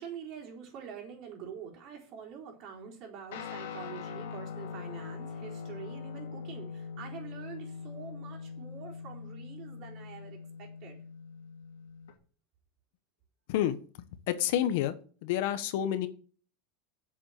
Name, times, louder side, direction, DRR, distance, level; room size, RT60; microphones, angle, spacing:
voice 1, 0.0-11.0, right 7 dB, 45° right, -1 dB, 4.2 m, -46 dB
Guitar, 3.3-12.1, left 5 dB, 90° left, 2.4 m, -42 dB
voice 2, 14.3-14.9 15.2-16.1, left 11 dB, 65° left, 11 dB, 1.1 m, -28 dB
7.5 x 7.4 x 7.2 m, 0.41 s
supercardioid pair, 150°, 0 cm